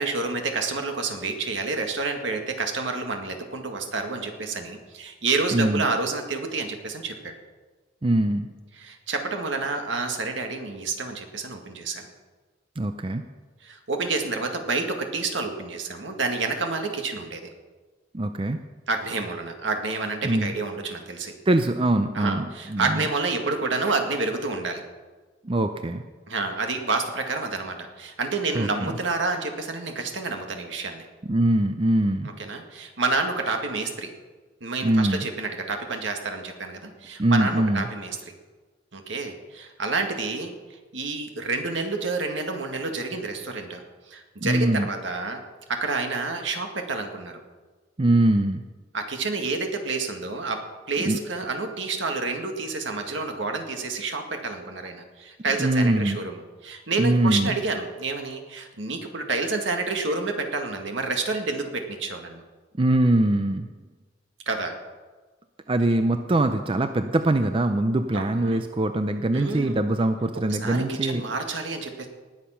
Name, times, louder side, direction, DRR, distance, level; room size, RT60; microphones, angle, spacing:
voice 1, 0.0-7.3 8.8-12.1 13.6-17.5 18.9-21.3 22.1-24.8 26.3-31.0 32.4-34.1 34.6-38.3 38.9-40.5 40.9-43.8 44.1-45.4 45.7-47.4 48.9-62.4 64.5-64.7 68.1-68.6 69.3-69.8 70.6-72.1, right 3 dB, 75° right, 4 dB, 1.9 m, -29 dB
voice 2, 5.5-5.8 8.0-8.5 12.8-13.2 18.1-18.6 20.2-20.5 21.5-23.1 25.4-26.0 28.5-29.0 31.2-32.3 34.8-35.3 37.2-37.9 44.4-44.9 48.0-48.6 51.1-51.2 55.6-56.2 57.0-57.6 62.8-63.7 65.7-71.2, right 1 dB, 30° right, 8 dB, 0.5 m, -22 dB
19.5 x 7.4 x 5.8 m, 1.3 s
head